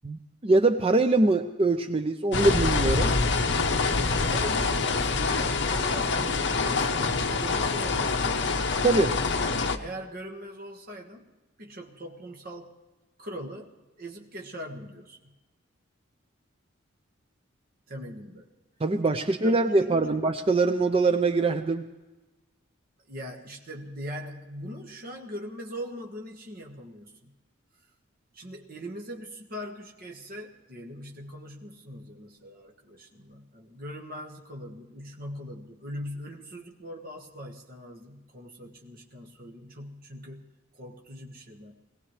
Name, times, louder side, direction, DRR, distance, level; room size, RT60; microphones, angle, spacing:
voice 1, 0.4-3.1 8.8-9.2 18.8-21.8, right 3 dB, 30° right, 8 dB, 0.5 m, -23 dB
sound 1, 2.3-9.8, left 4 dB, 60° left, 0.9 m, -25 dB
voice 2, 3.9-8.3 9.8-11.3 11.6-12.7 13.2-13.7 14.0-15.3 17.9-18.5 19.2-20.2 23.1-27.3 28.3-41.7, equal, 50° right, 1 dB, 1.5 m, -41 dB
22.0 x 17.0 x 3.3 m, 1.1 s
head